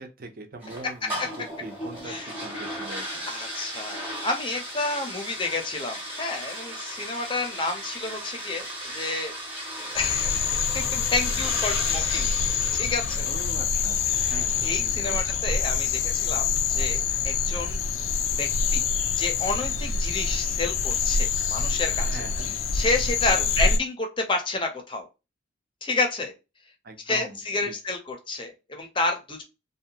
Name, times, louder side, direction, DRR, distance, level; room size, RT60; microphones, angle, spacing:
voice 1, 0.0-3.3 13.2-15.2 22.1-22.6 23.3-23.7 26.8-27.7, right 2 dB, 45° right, 5 dB, 0.6 m, -42 dB
sound 1, 0.6-15.9, equal, 10° right, 0.8 m, -37 dB
voice 2, 3.3-10.4 10.7-12.3 12.7-13.3 14.1-17.8 18.4-18.8 19.2-22.1 22.4-25.1 25.8-26.3 27.1-29.4, left 3 dB, 25° left, 4 dB, 0.6 m, -30 dB
sound 2, 10.0-23.8, left 5 dB, 85° left, 0.4 m, -26 dB
2.7 x 2.2 x 2.7 m, 0.27 s
head